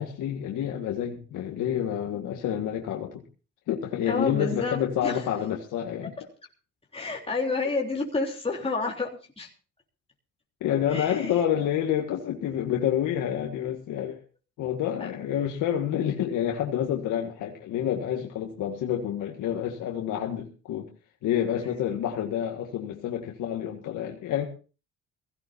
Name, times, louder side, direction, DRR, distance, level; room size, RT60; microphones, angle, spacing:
voice 1, 0.0-3.2 3.7-6.1 10.6-14.2 14.6-20.9 21.2-24.4, left 10 dB, 85° left, 2 dB, 1.8 m, -28 dB
voice 2, 4.1-5.2 6.9-9.5 10.9-11.3 15.0-15.1, left 3 dB, 20° left, -1 dB, 3.4 m, -30 dB
21.5 x 16.5 x 2.7 m, 0.35 s
cardioid pair, 90°, 30 cm